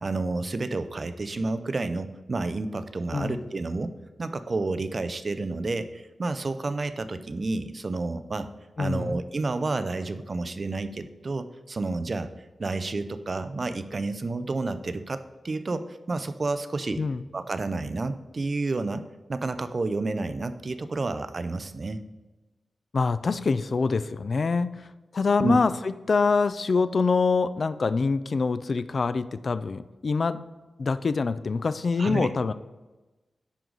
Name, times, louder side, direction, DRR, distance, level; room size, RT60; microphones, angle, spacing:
voice 1, 0.0-3.9 4.2-8.5 8.8-12.3 12.6-17.0 17.3-19.0 19.3-22.0 25.4-25.6 32.0-32.3, right 3 dB, 40° right, 11 dB, 0.5 m, -30 dB
voice 2, 3.1-3.4 8.8-9.2 17.0-17.2 22.9-24.9 25.1-30.4 30.8-32.5, left 4 dB, 50° left, 14 dB, 0.3 m, -25 dB
10.0 x 4.7 x 3.8 m, 1.1 s
wide cardioid pair, 135°, 0 cm